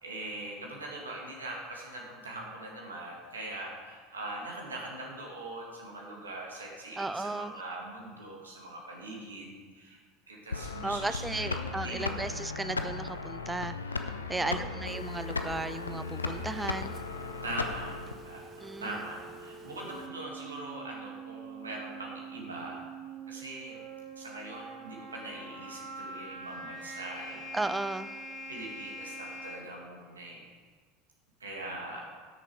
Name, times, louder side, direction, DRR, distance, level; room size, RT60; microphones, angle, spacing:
voice 1, 0.0-10.0 10.3-12.3 14.3-14.8 17.4-17.9 18.2-18.4 18.8-22.8 23.3-23.9 24.2-27.5 28.5-30.5 31.4-32.1, right 2 dB, 80° right, -1 dB, 2.2 m, -42 dB
voice 2, 7.0-7.5 10.8-17.0 18.6-18.9 27.5-28.1, right 2 dB, 10° right, 13 dB, 0.3 m, -35 dB
sound 1, 10.5-18.1, left 4 dB, 85° left, 0.6 m, -36 dB
Telephone, 14.9-20.1, right 2 dB, 35° right, 1.5 m, -48 dB
sound 2, 19.9-29.5, right 2 dB, 55° right, 2.7 m, -44 dB
13.0 x 6.8 x 4.9 m, 1.5 s
figure-of-eight pair, 75°, 0 cm